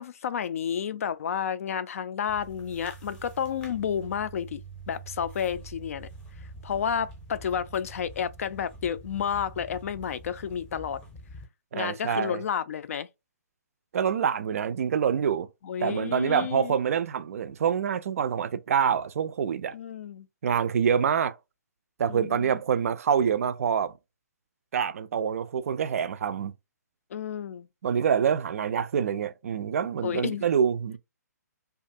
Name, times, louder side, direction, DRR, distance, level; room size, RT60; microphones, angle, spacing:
voice 1, 0.0-6.1 6.6-11.0 11.7-13.1 15.6-16.8 19.7-20.3 22.1-22.6 27.1-27.7 30.0-30.5, left 8 dB, 55° left, 0.3 m, -31 dB
sound 1, 2.3-11.4, right 3 dB, 10° left, 0.6 m, -45 dB
voice 2, 11.7-12.4 13.9-15.5 15.8-19.7 20.4-21.4 22.0-23.9 24.7-26.5 27.8-31.0, right 7 dB, 55° right, 0.4 m, -26 dB
2.5 x 2.3 x 2.6 m
hypercardioid pair, 145°, 9 cm